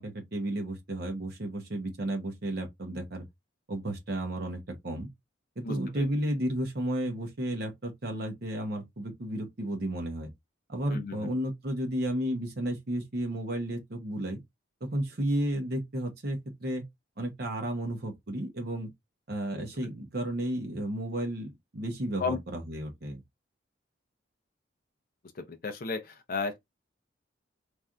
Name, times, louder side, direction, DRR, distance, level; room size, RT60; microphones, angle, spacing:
voice 1, 0.0-3.3 3.7-5.1 5.6-10.3 10.7-14.4 14.8-16.8 17.2-18.9 19.3-23.2, right 1 dB, 50° right, 0.8 m, -33 dB
voice 2, 5.6-6.1 10.9-11.3 22.2-22.4 25.4-26.6, left 4 dB, 45° left, 0.5 m, -34 dB
3.2 x 2.6 x 2.3 m
head